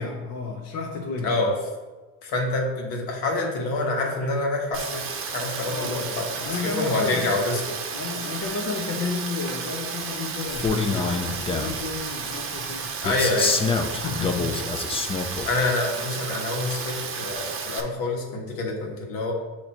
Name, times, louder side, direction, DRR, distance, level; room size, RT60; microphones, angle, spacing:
voice 1, 0.0-1.3 5.7-7.3 7.9-12.9 13.7-15.1, left 4 dB, 50° left, 0 dB, 0.7 m, -32 dB
voice 2, 1.2-1.6 2.2-7.8 13.0-13.6 15.4-19.3, left 2 dB, 75° left, 0 dB, 1.4 m, -27 dB
Rain, 4.7-17.8, right 5 dB, 35° right, 0.8 m, -33 dB
Male speech man speaking, 10.5-11.8 13.0-15.5, left 4 dB, 15° left, 0.4 m, -26 dB
7.5 x 2.9 x 4.3 m, 1.2 s
supercardioid pair, 105°, 35 cm